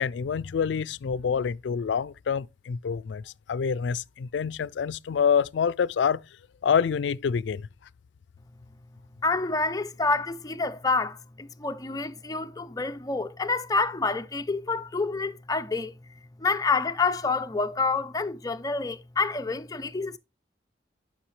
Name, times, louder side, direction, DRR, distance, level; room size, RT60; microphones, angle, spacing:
voice 1, 0.0-3.2 3.5-6.2 6.6-7.6, left 6 dB, 80° left, 0.4 m, -26 dB
voice 2, 9.2-15.9 16.4-20.2, left 3 dB, 20° left, 0.5 m, -28 dB
10.0 x 5.6 x 3.1 m
head